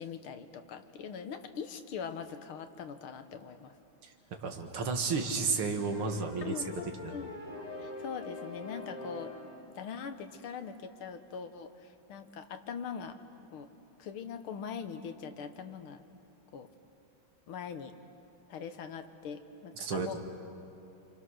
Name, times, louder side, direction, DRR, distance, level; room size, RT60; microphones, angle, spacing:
voice 1, 0.0-3.7 6.4-7.3 7.8-9.3 9.8-13.2 13.5-13.7 14.0-16.0 16.5-16.7 17.5-17.9 18.5-20.2, left 6 dB, 85° left, 8 dB, 1.9 m, -42 dB
voice 2, 4.0-6.6 7.0-7.1 19.8-20.2, right 4 dB, 85° right, 4 dB, 2.6 m, -32 dB
sound 1, 5.7-9.7, left 3 dB, 20° left, 2.1 m, -44 dB
28.5 x 26.0 x 6.4 m, 2.9 s
omnidirectional pair, 2.3 m